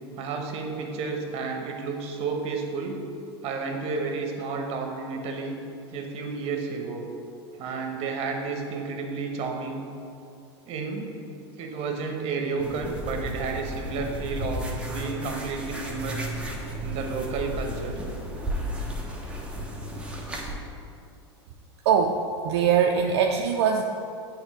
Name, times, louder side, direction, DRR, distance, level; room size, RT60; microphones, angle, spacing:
voice 1, 0.2-3.0 3.4-5.6 5.9-7.0 7.6-9.8 10.7-11.1 11.6-16.3 16.8-18.0, right 4 dB, 45° right, 3 dB, 1.0 m, -31 dB
sound 1, 12.6-20.5, right 1 dB, 5° right, 1.0 m, -34 dB
voice 2, 21.9-23.8, right 7 dB, 70° right, 3 dB, 0.4 m, -22 dB
7.9 x 3.5 x 4.8 m, 2.6 s
hypercardioid pair, 100°, 14 cm